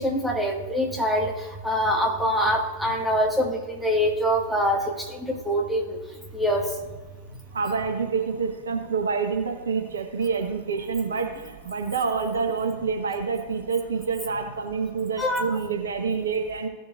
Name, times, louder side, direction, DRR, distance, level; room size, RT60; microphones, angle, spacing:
voice 1, 0.0-6.0 6.3-6.7 15.2-15.5, equal, ahead, -2 dB, 1.8 m, -24 dB
voice 2, 7.3-16.7, right 5 dB, 70° right, 3 dB, 1.2 m, -27 dB
16.5 x 6.9 x 2.5 m, 1.3 s
figure-of-eight pair, 90°, 0 cm